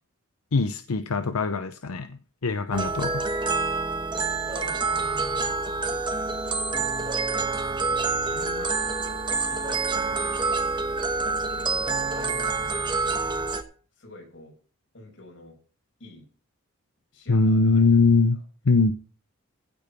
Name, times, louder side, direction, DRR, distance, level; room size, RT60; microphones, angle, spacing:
voice 1, 0.5-3.2 17.3-18.4 18.6-18.9, left 3 dB, 90° left, 9 dB, 0.8 m, -22 dB
sound 1, 2.7-13.6, right 4 dB, 20° right, 1.2 m, -27 dB
voice 2, 4.5-7.5 8.3-9.2 9.5-13.4 13.9-14.5 14.9-15.5 16.0-16.2 17.1-18.0, left 2 dB, 60° left, 0 dB, 6.6 m, -46 dB
16.0 x 5.3 x 5.9 m, 0.38 s
head